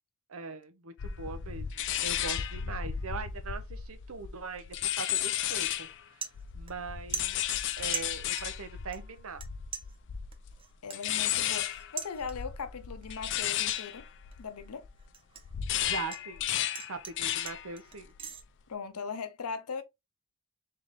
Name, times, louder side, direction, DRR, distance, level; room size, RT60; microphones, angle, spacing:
voice 1, 0.3-6.2 6.5-7.4 7.8-9.4 15.8-16.5 16.9-18.1, right 4 dB, 65° right, 0.7 m, -41 dB
sound 1, 1.0-6.0 6.3-15.0 15.4-17.7 18.0-18.4, left 10 dB, 55° left, 0.4 m, -34 dB
sound 2, 5.3-5.5 5.9-6.9 7.1-8.6 8.9-9.5 9.7-12.6 13.0-13.4 13.8-16.2 16.5-18.4, right 6 dB, 25° right, 0.5 m, -42 dB
voice 2, 10.8-14.1 14.4-14.9 18.7-19.8, left 5 dB, 85° left, 0.7 m, -39 dB
3.7 x 3.3 x 3.6 m
head